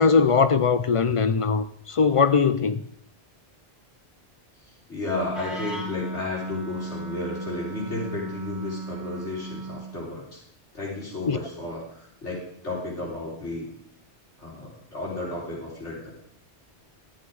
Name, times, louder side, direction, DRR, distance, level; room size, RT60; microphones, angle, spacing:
voice 1, 0.0-2.8 11.3-11.4, left 5 dB, 55° left, 0.3 m, -20 dB
voice 2, 4.9-10.4 10.7-13.7 14.4-16.1, left 2 dB, 90° left, 4.6 m, -33 dB
Wind instrument woodwind instrument, 5.1-10.0, right 1 dB, ahead, 1.5 m, -36 dB
13.0 x 8.2 x 4.8 m
omnidirectional pair, 1.2 m